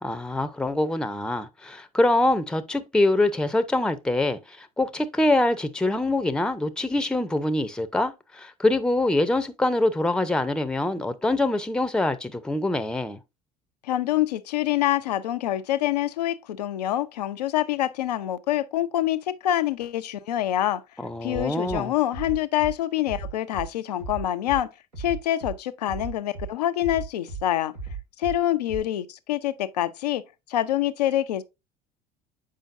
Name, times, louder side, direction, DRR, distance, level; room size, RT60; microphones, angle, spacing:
voice 1, 0.0-13.2 21.0-21.9, left 2 dB, 5° left, 0.7 m, -24 dB
voice 2, 13.8-20.8 21.2-24.7 25.0-27.7 28.2-30.2 30.5-31.4, left 13 dB, 75° left, 0.5 m, -26 dB
Bass drum, 21.3-21.8 22.1-22.7 23.1-23.7 24.0-24.6 24.9-25.5 25.9-26.5 26.8-27.4 27.7-28.4 28.7-28.8, right 4 dB, 90° right, 2.3 m, -35 dB
7.4 x 5.0 x 2.5 m
figure-of-eight pair, 65°, 21 cm